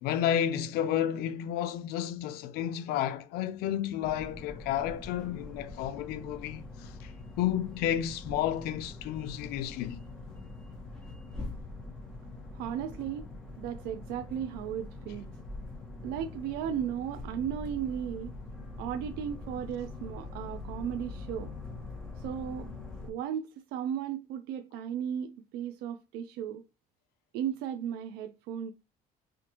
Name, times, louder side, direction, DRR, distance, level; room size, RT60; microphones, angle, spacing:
voice 1, 0.0-7.1 7.4-10.0, left 10 dB, 85° left, 0.5 m, -31 dB
sound 1, 4.0-23.1, left 2 dB, 5° left, 1.1 m, -43 dB
voice 2, 12.5-13.3 13.6-15.3 16.0-18.3 18.8-21.5 22.2-22.7 23.0-26.6 27.3-28.7, right 9 dB, 90° right, 0.4 m, -35 dB
5.0 x 2.5 x 2.8 m
cardioid pair, 130°, 16 cm